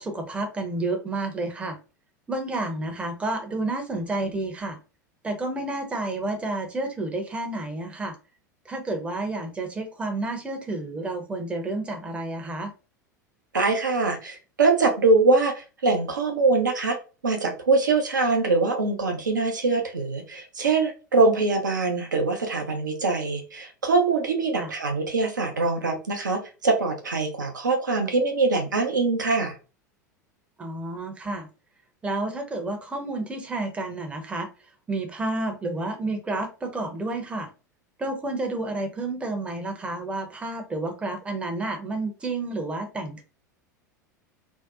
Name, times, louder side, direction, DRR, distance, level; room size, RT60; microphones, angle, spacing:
voice 1, 0.0-1.8 2.3-4.8 5.2-8.2 8.7-12.7 24.5-24.7 30.6-31.5 32.0-34.5 34.9-37.5 38.0-43.2, right 2 dB, 10° right, 4 dB, 0.5 m, -30 dB
voice 2, 13.5-17.0 17.2-29.5, right 3 dB, 80° right, 4 dB, 0.6 m, -23 dB
2.6 x 2.0 x 2.4 m, 0.33 s
figure-of-eight pair, 80°, 10 cm